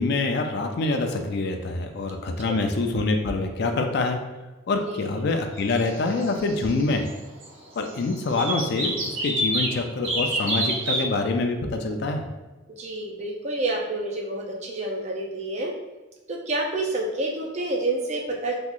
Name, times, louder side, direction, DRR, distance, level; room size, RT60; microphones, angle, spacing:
voice 1, 0.0-4.2 4.7-7.0 7.8-12.2, left 3 dB, 50° left, 5 dB, 0.3 m, -25 dB
sound 1, 5.6-7.2 7.4-7.5 7.8-9.8 10.0-11.0, right 1 dB, 70° right, 0.9 m, -28 dB
voice 2, 12.8-15.7 16.3-18.5, right 2 dB, 35° right, 0 dB, 0.5 m, -28 dB
2.9 x 2.4 x 3.7 m, 1.2 s
head